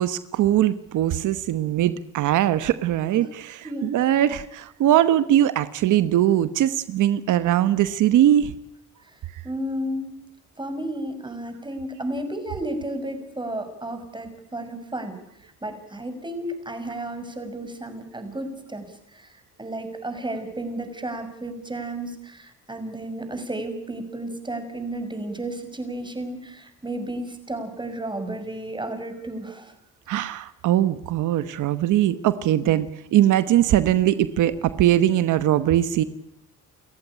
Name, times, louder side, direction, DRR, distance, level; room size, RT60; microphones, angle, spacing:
voice 1, 0.0-8.5 30.1-36.0, right 12 dB, 80° right, 13 dB, 1.1 m, -21 dB
voice 2, 9.4-10.1 10.6-29.7, right 1 dB, 15° right, 8 dB, 6.1 m, -33 dB
30.0 x 14.5 x 10.0 m, 0.81 s
cardioid pair, 90°, 30 cm